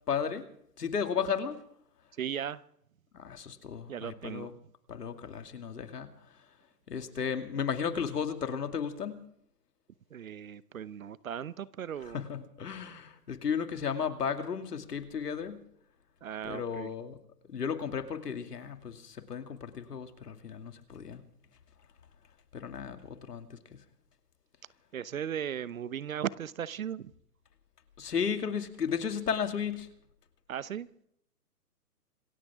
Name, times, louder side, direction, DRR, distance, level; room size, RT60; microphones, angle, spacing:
voice 1, 0.1-0.5 0.8-1.6 3.1-4.5 4.9-6.1 6.9-9.2 12.1-15.6 16.4-17.2 17.5-21.2 22.5-23.8 28.0-29.9, left 7 dB, 75° left, 2.5 m, -34 dB
voice 2, 2.2-2.6 3.9-4.5 10.1-12.2 16.2-16.9 24.9-27.1 30.5-30.9, right 9 dB, 60° right, 0.8 m, -37 dB
26.5 x 14.5 x 3.6 m
hypercardioid pair, 160°, 48 cm